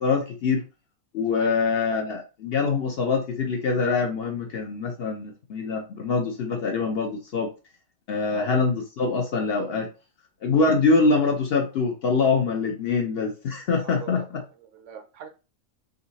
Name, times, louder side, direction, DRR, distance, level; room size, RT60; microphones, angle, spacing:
voice 1, 0.0-0.6 1.1-7.5 8.1-9.9 10.4-14.4, left 4 dB, 60° left, 2 dB, 0.7 m, -24 dB
voice 2, 13.7-15.3, right 8 dB, 70° right, 6 dB, 0.9 m, -42 dB
3.8 x 2.6 x 2.7 m, 0.32 s
omnidirectional pair, 1.4 m